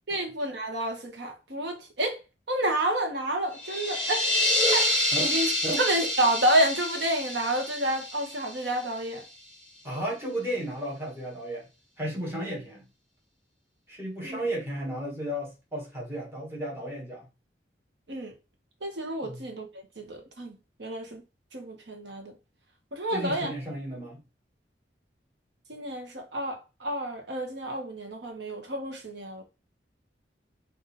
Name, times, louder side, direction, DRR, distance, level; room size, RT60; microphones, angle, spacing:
voice 1, 0.1-2.2 2.5-4.2 4.7-4.9 5.3-5.5 5.8-9.2 14.2-14.4 18.1-18.3 18.8-19.7 20.0-21.2 21.5-22.3 22.9-23.5 25.7-29.4, right 1 dB, 80° right, 1.2 m, -29 dB
sound 1, 3.5-9.2, left 1 dB, 10° left, 2.2 m, -28 dB
voice 2, 5.1-5.8 9.8-11.6 12.0-12.9 13.9-17.2 19.2-19.4 23.1-24.2, right 1 dB, 15° right, 1.5 m, -34 dB
4.0 x 2.7 x 4.1 m
head